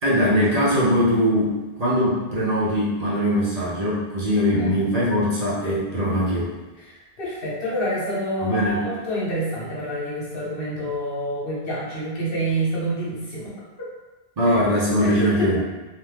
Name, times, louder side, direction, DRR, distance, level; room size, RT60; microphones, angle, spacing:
voice 1, 0.0-6.5 8.4-8.8 14.4-15.6, equal, 45° right, -8 dB, 0.7 m, -21 dB
voice 2, 7.2-13.5 13.8-13.9 14.5-14.6 15.0-15.1, right 1 dB, 65° left, -6 dB, 1.0 m, -27 dB
2.8 x 2.1 x 3.3 m, 1.2 s
omnidirectional pair, 1.0 m